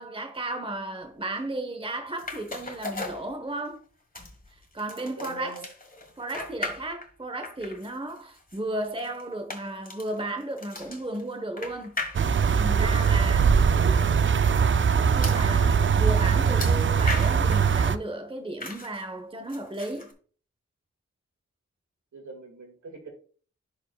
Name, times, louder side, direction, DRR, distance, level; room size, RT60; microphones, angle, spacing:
voice 1, 0.0-3.8 4.7-5.6 6.2-12.0 12.5-13.6 15.1-20.1, right 1 dB, 20° right, 1.1 m, -34 dB
sound 1, 2.2-3.8 4.1-7.2 7.4-12.7 13.4-13.5 13.8-13.9 15.2-15.5 16.6-17.7 18.6-19.0 19.5-20.1, left 3 dB, 30° left, 1.5 m, -38 dB
voice 2, 5.2-5.7 22.1-23.1, right 1 dB, 70° right, 2.0 m, -41 dB
sound 2, 12.1-18.0, right 6 dB, 40° right, 0.5 m, -21 dB
10.5 x 4.8 x 2.3 m
cardioid pair, 50°, 30 cm